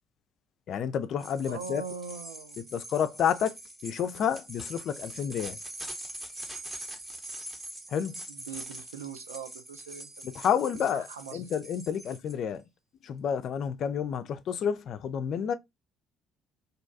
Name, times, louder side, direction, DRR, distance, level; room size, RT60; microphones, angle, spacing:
voice 1, 0.7-1.8 2.6-3.6 3.8-5.6 7.9-8.2 10.2-12.6 13.0-15.5, left 8 dB, 55° left, 0.3 m, -30 dB
sound 1, 1.2-12.3, right 1 dB, 15° right, 0.8 m, -43 dB
voice 2, 1.5-2.7 8.3-10.1 10.9-11.4, right 6 dB, 90° right, 0.3 m, -41 dB
2.6 x 2.2 x 2.5 m
hypercardioid pair, 55°, 0 cm